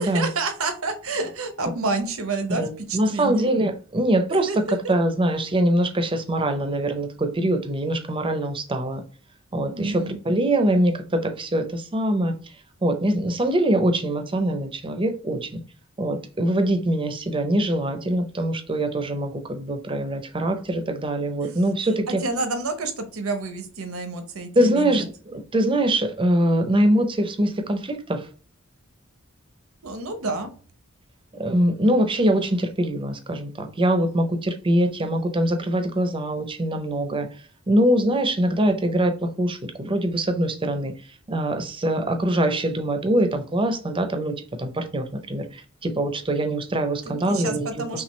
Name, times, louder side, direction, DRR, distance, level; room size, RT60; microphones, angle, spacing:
voice 1, 0.0-3.5 4.3-4.6 9.7-10.2 21.4-21.6 22.1-25.1 29.8-30.5 47.0-48.0, right 3 dB, 75° right, 0.9 m, -29 dB
voice 2, 2.6-4.5 4.9-9.0 9.5-12.3 12.8-15.6 16.0-22.2 24.6-28.3 31.3-37.3 37.7-40.9 41.3-47.7 47.9-48.0, right 1 dB, 25° right, 0.6 m, -23 dB
5.8 x 2.4 x 3.1 m
head